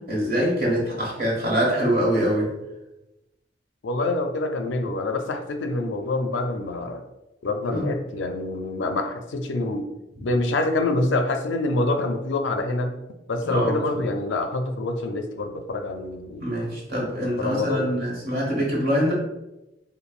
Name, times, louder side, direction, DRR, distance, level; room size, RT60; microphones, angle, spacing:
voice 1, 0.1-2.5 7.7-7.8 13.4-13.8 16.4-19.1, equal, 55° right, -3 dB, 1.3 m, -24 dB
voice 2, 3.8-7.0 7.4-9.9 10.2-12.9 13.3-16.6 17.2-17.9, left 2 dB, 70° left, 5 dB, 0.4 m, -26 dB
5.3 x 2.2 x 2.4 m, 0.97 s
head